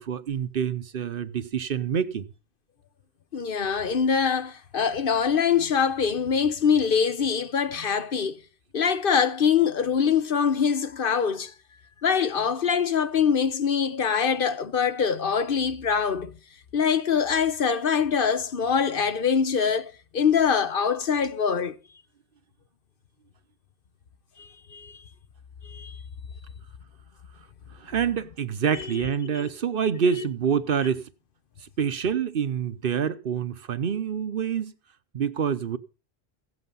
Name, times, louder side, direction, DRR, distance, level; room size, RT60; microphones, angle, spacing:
voice 1, 0.0-2.3 27.7-31.1 31.6-34.7 35.1-35.8, right 7 dB, 60° right, 0.9 m, -27 dB
voice 2, 3.3-8.4 8.7-11.5 12.0-16.3 16.7-21.8 24.4-25.0 25.7-26.0 29.3-29.5, left 6 dB, 55° left, 1.0 m, -24 dB
16.0 x 8.0 x 5.5 m
omnidirectional pair, 1.1 m